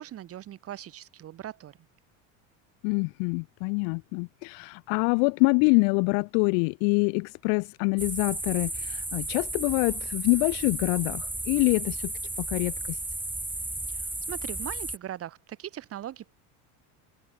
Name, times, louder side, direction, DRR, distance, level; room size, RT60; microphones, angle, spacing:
voice 1, 0.0-1.9 13.9-16.3, right 11 dB, 40° right, 4.8 m, -40 dB
voice 2, 2.8-12.1 12.4-13.0, left 40 dB or more, 70° left, 3.0 m, -25 dB
sound 1, 8.0-15.0, right 2 dB, 5° right, 1.9 m, -34 dB
cardioid pair, 140°, 37 cm